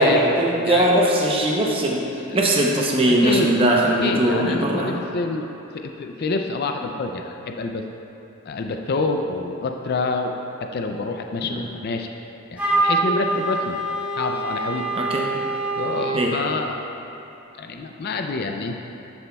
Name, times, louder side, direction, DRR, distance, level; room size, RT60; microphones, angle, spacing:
voice 1, 0.0-2.1 2.3-5.0 11.5-11.6 14.9-15.2 16.1-16.3, right 1 dB, 25° right, -1 dB, 0.7 m, -20 dB
voice 2, 3.1-3.5 4.0-5.5 5.7-7.8 8.5-10.3 10.7-12.1 12.5-13.8 14.2-14.8 15.8-16.8 17.6-18.8, left 3 dB, 45° left, 4 dB, 0.4 m, -27 dB
Wind instrument woodwind instrument, 12.6-16.2, right 2 dB, 5° right, 1.1 m, -24 dB
11.0 x 7.0 x 2.3 m, 2.9 s
head